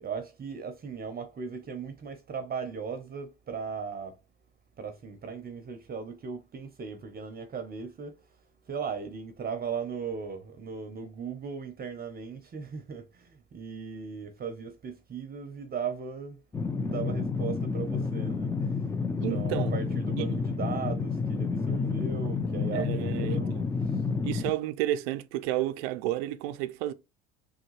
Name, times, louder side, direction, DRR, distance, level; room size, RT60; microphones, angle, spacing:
voice 1, 0.0-4.2 4.8-8.1 8.7-16.4 16.8-18.5 19.1-23.5 23.9-24.0, right 6 dB, 30° right, 0.6 m, -37 dB
sound 1, 16.5-24.5, left 4 dB, 10° left, 0.3 m, -30 dB
voice 2, 19.2-19.7 20.2-20.4 22.7-23.7 24.2-26.9, right 14 dB, 90° right, 0.5 m, -31 dB
3.4 x 2.2 x 3.0 m
supercardioid pair, 85°, 30 cm